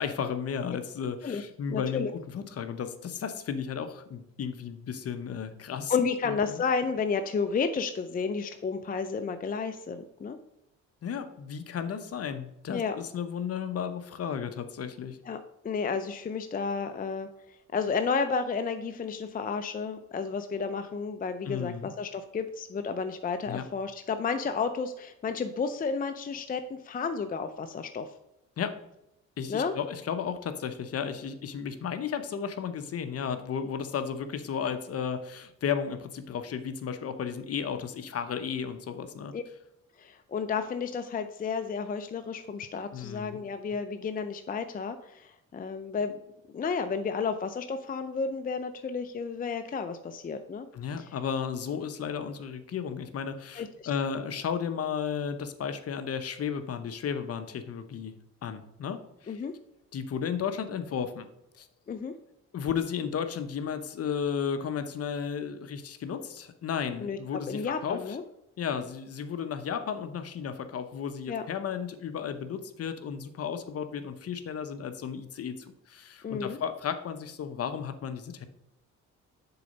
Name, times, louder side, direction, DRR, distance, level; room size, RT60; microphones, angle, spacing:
voice 1, 0.0-5.9 6.2-6.6 11.0-15.2 21.4-21.9 23.5-23.6 28.6-28.8 29.4-39.3 42.9-43.4 50.7-58.1 58.4-59.4 59.9-61.3 61.6-61.7 62.5-68.0 68.6-78.5, left 7 dB, 50° left, 9 dB, 0.8 m, -34 dB
voice 2, 1.7-2.1 5.9-10.4 12.7-13.0 15.2-28.1 29.5-29.8 39.3-39.4 40.0-46.2 46.5-50.7 51.0-51.1 53.6-53.9 59.3-59.5 61.9-62.1 67.0-67.2 67.5-68.2 71.3-71.5 76.2-76.6, left 5 dB, 30° left, 8 dB, 0.5 m, -32 dB
6.8 x 3.9 x 5.3 m, 0.85 s
cardioid pair, 90°, 30 cm